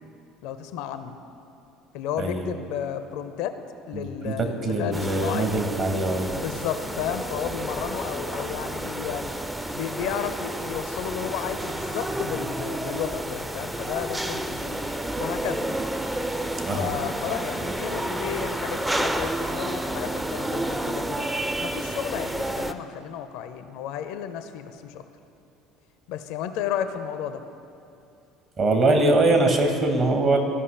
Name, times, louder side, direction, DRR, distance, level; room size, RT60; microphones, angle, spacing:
voice 1, 0.4-1.1 1.9-3.6 3.9-5.5 6.3-9.3 9.7-14.9 15.2-15.7 16.6-21.3 21.6-25.0 26.1-27.4, left 9 dB, 60° left, 10 dB, 0.4 m, -33 dB
voice 2, 3.9-6.3 16.7-16.9 28.6-30.4, right 2 dB, 40° right, 4 dB, 1.2 m, -22 dB
sound 1, 4.9-22.7, right 1 dB, 10° right, 0.4 m, -30 dB
14.0 x 5.3 x 3.2 m, 2.7 s
figure-of-eight pair, 60°, 0 cm